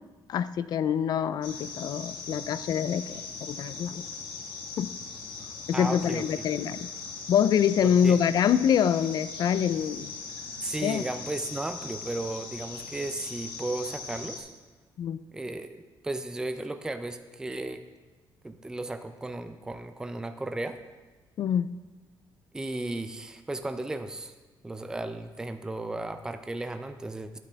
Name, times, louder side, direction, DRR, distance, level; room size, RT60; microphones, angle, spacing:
voice 1, 0.3-4.0 4.8-4.9 5.7-6.8 7.3-10.1 10.8-11.0 15.0-15.2 21.4-21.8, left 8 dB, 55° left, 15 dB, 0.4 m, -25 dB
sound 1, 1.4-14.4, left 4 dB, 70° left, 1.4 m, -40 dB
voice 2, 5.7-6.3 7.8-8.2 10.6-14.5 15.3-17.8 18.4-20.8 22.5-24.3 24.6-27.4, right 2 dB, 10° right, 9 dB, 0.4 m, -35 dB
9.7 x 8.9 x 3.4 m, 1.3 s
cardioid pair, 125°, 8 cm